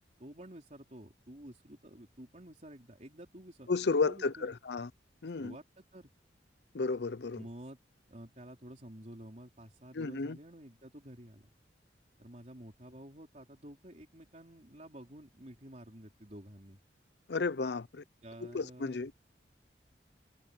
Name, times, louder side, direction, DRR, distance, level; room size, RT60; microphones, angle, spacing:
voice 1, 0.2-4.5 5.4-6.1 7.4-7.8 8.1-11.5 12.2-16.8 18.2-19.0, right 1 dB, 40° right, 3.9 m, -50 dB
voice 2, 3.7-4.9 5.2-5.5 6.7-7.4 9.9-10.4 17.3-18.0 18.4-19.1, left 4 dB, 65° left, 0.6 m, -33 dB
open air
head